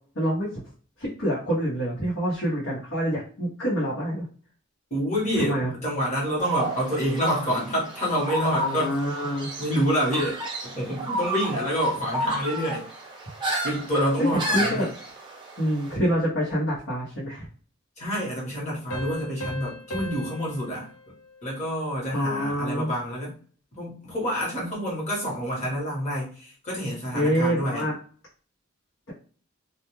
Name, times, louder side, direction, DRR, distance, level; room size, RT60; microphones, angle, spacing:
voice 1, 0.1-0.5 1.0-4.2 5.4-5.7 8.5-9.5 14.2-14.9 15.6-17.5 22.1-22.9 27.1-27.9, equal, 70° left, -8 dB, 1.0 m, -26 dB
voice 2, 4.9-8.9 9.6-12.8 13.6-14.9 18.0-20.9 21.4-23.3 23.8-27.9, equal, 35° left, -4 dB, 1.2 m, -27 dB
sound 1, 6.4-15.9, right 1 dB, 25° right, 0.7 m, -32 dB
sound 2, 18.9-22.2, left 1 dB, 85° left, 0.8 m, -39 dB
2.3 x 2.2 x 3.0 m, 0.43 s
head